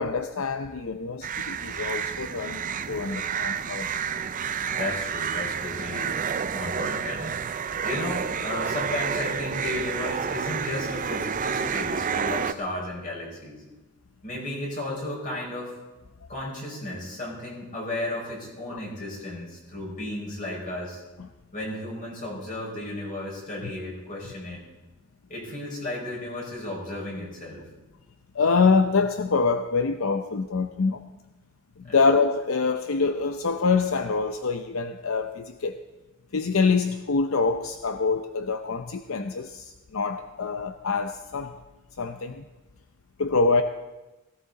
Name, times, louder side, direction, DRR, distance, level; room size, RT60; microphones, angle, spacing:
voice 1, 0.0-3.9 18.7-18.8 28.3-31.0 31.9-35.8 36.3-41.5 42.0-42.4 43.2-43.6, left 4 dB, 70° left, 0.7 m, -25 dB
sound 1, 1.2-12.5, right 6 dB, 40° right, 0.5 m, -30 dB
voice 2, 4.7-6.2 6.5-13.6 14.2-15.8 16.3-21.0 21.5-24.6 25.3-27.7 31.8-32.0, left 1 dB, 40° left, 5.8 m, -34 dB
17.0 x 17.0 x 4.1 m
head